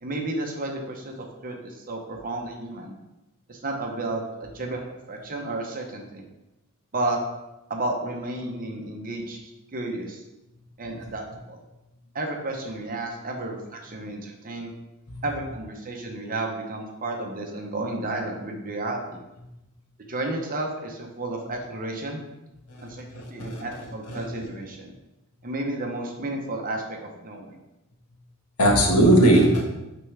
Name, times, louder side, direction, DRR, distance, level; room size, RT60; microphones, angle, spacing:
voice 1, 0.0-2.9 3.5-4.2 4.5-6.2 6.9-7.2 7.7-10.2 10.8-11.6 12.1-14.7 15.2-19.2 20.1-22.2 22.8-24.9 25.4-27.6, right 2 dB, 40° right, 1 dB, 0.8 m, -32 dB
voice 2, 22.7-23.7 24.1-24.2 28.6-29.6, right 1 dB, 90° left, 0 dB, 1.4 m, -20 dB
9.0 x 3.4 x 3.3 m, 0.96 s
head